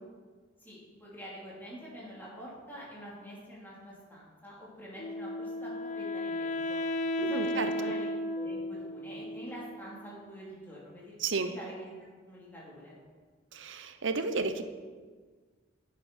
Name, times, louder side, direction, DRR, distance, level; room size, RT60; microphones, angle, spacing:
voice 1, 0.6-6.8 7.2-8.1 8.3-11.9 12.2-13.0, equal, 10° left, -7 dB, 3.2 m, -46 dB
Wind instrument woodwind instrument, 5.0-10.0, left 1 dB, 40° left, 0.6 m, -34 dB
voice 2, 7.2-7.7 11.2-11.5 13.5-14.6, right 4 dB, 85° right, 9 dB, 0.7 m, -32 dB
9.0 x 7.4 x 5.5 m, 1.5 s
head